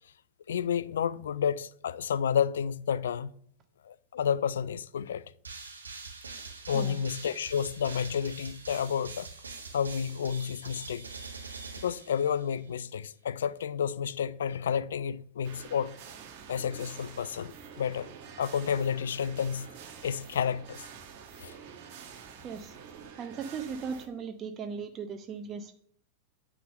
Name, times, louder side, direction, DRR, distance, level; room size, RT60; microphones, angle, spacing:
voice 1, 0.5-3.3 3.9-5.2 6.7-9.3 9.7-11.0 11.8-15.9 16.5-18.1 18.4-19.7 20.0-20.8 21.4-21.5, left 8 dB, 65° left, 0.3 m, -30 dB
sound 1, 5.4-12.7, right 4 dB, 75° right, 1.5 m, -44 dB
sound 2, 15.4-24.1, right 7 dB, 45° right, 1.1 m, -48 dB
voice 2, 22.4-22.7 23.2-25.8, right 6 dB, 30° right, 0.6 m, -38 dB
9.3 x 3.8 x 6.5 m
figure-of-eight pair, 90°, 0 cm